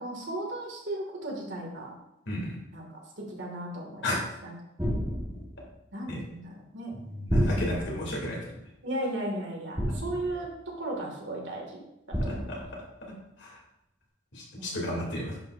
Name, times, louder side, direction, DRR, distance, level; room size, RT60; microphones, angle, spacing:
voice 1, 0.0-1.9 2.7-4.2 4.4-4.5 5.9-7.0 7.3-7.8 8.8-11.8 12.1-12.7 14.6-15.1, right 1 dB, 65° right, -1 dB, 2.1 m, -36 dB
voice 2, 2.3-2.6 4.0-4.2 6.1-6.2 7.1-8.4 12.3-12.6 13.4-13.6 14.3-15.4, left 1 dB, 65° left, -3 dB, 2.8 m, -33 dB
sound 1, 4.8-5.6 7.3-8.1 9.8-10.5 12.1-12.8, equal, 15° right, 1.5 m, -30 dB
10.5 x 5.8 x 2.6 m, 0.87 s
head